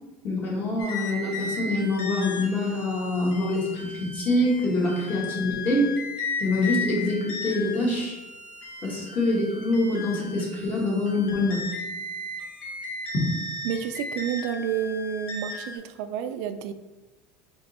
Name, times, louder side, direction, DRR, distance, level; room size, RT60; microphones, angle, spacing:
voice 1, 0.2-5.9 6.4-8.2 8.8-11.6 13.1-13.4, left 2 dB, 30° left, -3 dB, 1.5 m, -25 dB
sound 1, 0.8-15.8, left 3 dB, 85° left, 1.2 m, -36 dB
voice 2, 13.6-16.7, right 8 dB, 65° right, 8 dB, 0.3 m, -30 dB
4.2 x 3.0 x 4.1 m, 1.1 s
cardioid pair, 155°, 6 cm